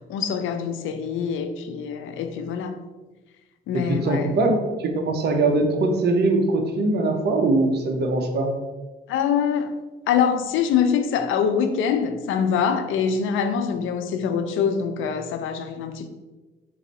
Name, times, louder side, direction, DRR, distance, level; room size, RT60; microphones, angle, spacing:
voice 1, 0.1-2.8 3.7-4.3 9.1-9.7 10.1-16.1, left 7 dB, 80° left, 0.5 m, -24 dB
voice 2, 3.7-8.5, right 2 dB, 55° right, 0.8 m, -22 dB
4.7 x 2.6 x 4.1 m
cardioid pair, 90°, 20 cm